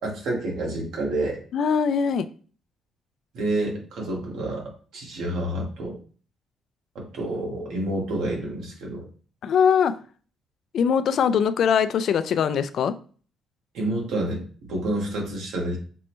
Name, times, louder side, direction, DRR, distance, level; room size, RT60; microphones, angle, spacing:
voice 1, 0.0-1.4 3.3-5.9 6.9-9.0 13.7-14.4 14.7-15.8, right 1 dB, 80° right, -1 dB, 1.4 m, -28 dB
voice 2, 1.5-2.3 9.4-9.9 10.7-13.0, left 7 dB, 65° left, 12 dB, 0.3 m, -21 dB
6.0 x 2.1 x 3.0 m, 0.41 s
cardioid pair, 90°, 0 cm